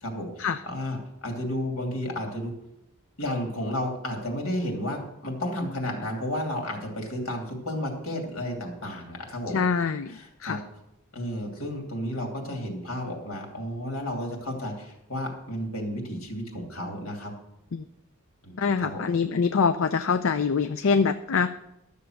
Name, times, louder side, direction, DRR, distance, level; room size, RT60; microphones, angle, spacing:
voice 1, 0.0-2.5 3.2-9.6 10.1-10.6 11.1-17.3 18.5-19.0, left 1 dB, 80° left, 1 dB, 2.9 m, -32 dB
voice 2, 9.5-10.6 17.7-17.8 18.6-21.6, left 5 dB, 65° left, 10 dB, 0.5 m, -25 dB
12.5 x 7.0 x 6.5 m, 0.86 s
head